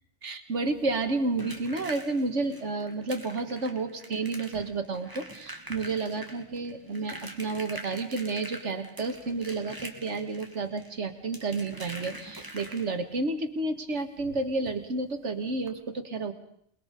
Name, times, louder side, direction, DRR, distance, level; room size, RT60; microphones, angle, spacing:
voice 1, 0.2-16.3, right 3 dB, 90° right, 7 dB, 2.1 m, -31 dB
sound 1, 0.7-13.2 14.6-14.7 15.0-15.2 15.6-15.7, right 1 dB, 20° right, 2.5 m, -44 dB
28.5 x 21.0 x 5.2 m, 0.68 s
omnidirectional pair, 1.2 m